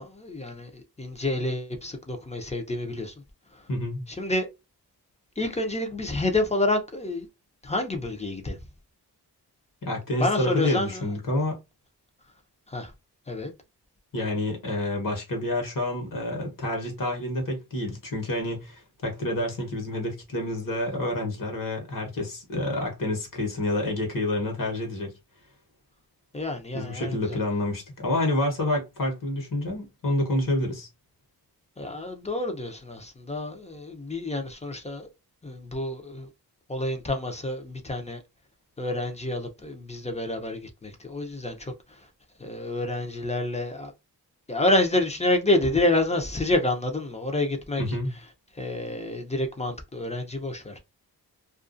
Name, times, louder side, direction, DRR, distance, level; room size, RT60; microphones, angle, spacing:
voice 1, 0.0-3.1 3.5-3.6 4.1-4.5 5.4-7.3 7.6-8.6 10.2-11.1 12.7-12.9 13.3-13.5 26.3-27.4 31.8-35.1 35.4-36.3 36.7-38.2 38.8-42.0 42.4-43.9 44.5-47.8 48.5-50.8, left 2 dB, 15° left, 0.6 m, -28 dB
voice 2, 3.7-4.1 9.8-11.6 14.1-25.1 26.7-30.9 47.8-48.1, left 1 dB, 55° left, 1.1 m, -28 dB
2.4 x 2.3 x 2.5 m
cardioid pair, 70°, 40 cm